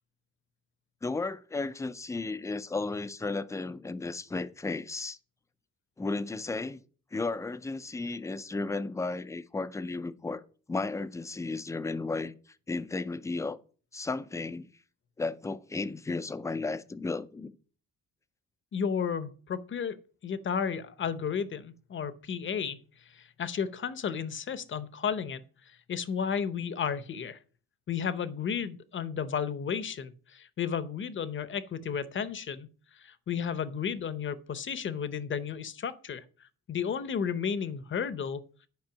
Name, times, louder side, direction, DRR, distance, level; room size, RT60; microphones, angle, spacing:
voice 1, 1.0-5.2 6.0-6.8 7.1-10.4 10.7-12.3 12.7-13.6 13.9-14.7 15.2-17.5, left 3 dB, 10° left, 0.4 m, -34 dB
voice 2, 18.7-22.8 23.1-25.4 25.9-27.4 27.9-32.7 33.0-36.2 36.7-38.4, left 7 dB, 35° left, 0.7 m, -33 dB
10.5 x 5.3 x 7.1 m
wide cardioid pair, 180°, 34 cm